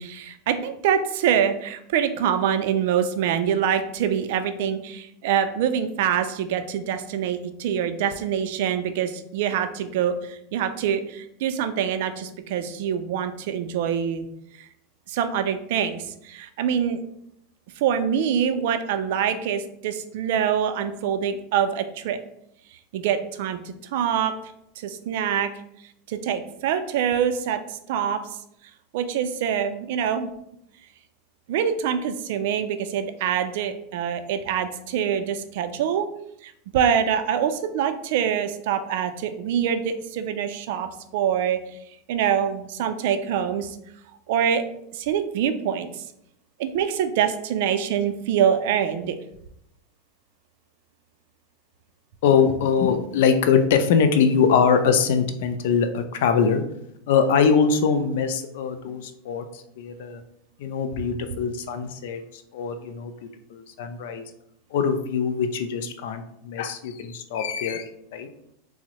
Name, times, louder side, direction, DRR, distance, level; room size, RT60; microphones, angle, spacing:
voice 1, 0.0-14.3 14.6-14.7 15.1-17.0 17.8-22.2 22.9-24.3 24.8-25.5 26.1-28.2 28.9-30.3 31.5-36.1 36.4-41.6 42.1-43.8 44.3-44.6 44.9-46.0 46.6-49.2, right 8 dB, 70° right, 8 dB, 0.3 m, -25 dB
voice 2, 52.2-56.6 57.1-60.2 60.6-64.2 64.7-68.3, left 6 dB, 70° left, 8 dB, 0.4 m, -23 dB
3.4 x 2.0 x 2.9 m, 0.76 s
supercardioid pair, 135°, 0 cm